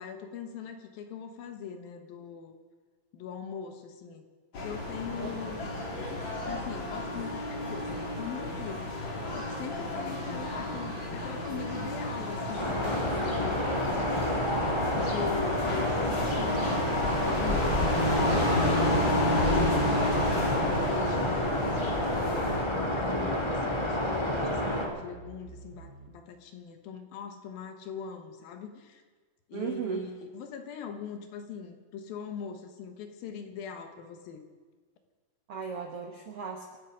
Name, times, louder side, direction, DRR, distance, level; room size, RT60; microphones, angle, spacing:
voice 1, 0.0-2.6 3.1-4.3 4.6-5.7 6.5-8.9 9.3-14.2 14.9-20.3 20.7-21.8 22.0-29.0 29.5-34.4, left 7 dB, 75° left, 6 dB, 2.9 m, -41 dB
sound 1, 4.5-22.6, left 1 dB, 35° left, 2.7 m, -31 dB
voice 2, 5.2-5.6 29.5-30.1 35.5-36.8, right 6 dB, 75° right, 3 dB, 1.3 m, -36 dB
sound 2, 12.6-24.8, left 1 dB, 20° left, 0.8 m, -29 dB
sound 3, 19.3-26.1, right 3 dB, 55° right, 7.6 m, -50 dB
26.5 x 9.5 x 5.1 m, 1.4 s
omnidirectional pair, 4.4 m